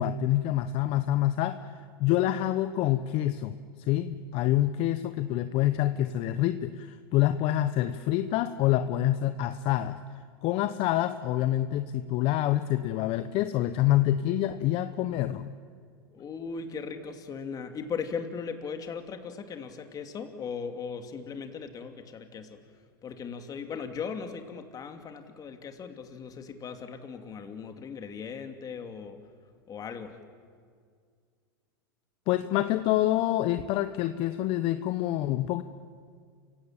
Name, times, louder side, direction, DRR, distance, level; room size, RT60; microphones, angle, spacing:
voice 1, 0.0-3.6 3.9-10.0 10.4-15.5 32.3-35.6, left 13 dB, 50° left, 11 dB, 1.0 m, -27 dB
voice 2, 16.1-22.6 23.0-29.2 29.7-30.2, left 6 dB, 30° left, 6 dB, 2.7 m, -38 dB
28.5 x 16.5 x 9.0 m, 2.1 s
hypercardioid pair, 110°, 13 cm